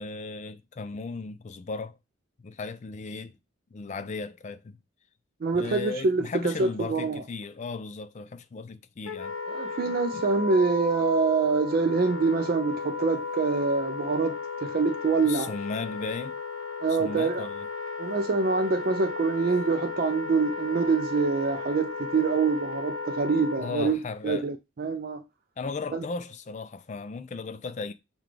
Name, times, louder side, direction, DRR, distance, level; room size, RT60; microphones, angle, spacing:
voice 1, 0.0-1.9 2.4-3.4 3.7-4.8 5.5-9.3 10.1-10.2 15.2-16.4 16.9-17.7 23.5-24.5 25.6-27.9, left 4 dB, 35° left, 0.3 m, -36 dB
voice 2, 5.4-7.2 9.5-15.5 16.8-17.5 18.0-25.2 25.9-26.0, right 4 dB, 45° right, 0.4 m, -25 dB
Wind instrument woodwind instrument, 9.1-23.9, left 4 dB, 80° left, 0.7 m, -35 dB
5.9 x 2.3 x 3.2 m
head